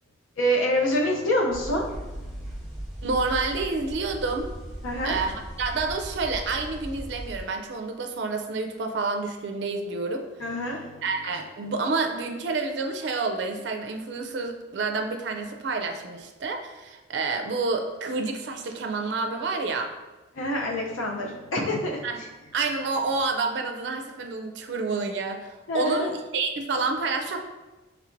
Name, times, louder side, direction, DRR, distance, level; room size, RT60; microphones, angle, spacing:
voice 1, 0.4-2.7 4.8-5.2 10.4-11.0 20.3-22.3 25.7-26.1, equal, 90° left, -1 dB, 0.6 m, -27 dB
sound 1, 1.5-7.4, right 1 dB, ahead, 1.1 m, -38 dB
voice 2, 3.0-4.5 5.0-10.2 11.0-19.9 22.0-22.2 22.5-27.4, right 3 dB, 60° right, 4 dB, 0.4 m, -29 dB
4.4 x 3.3 x 2.5 m, 1.1 s
head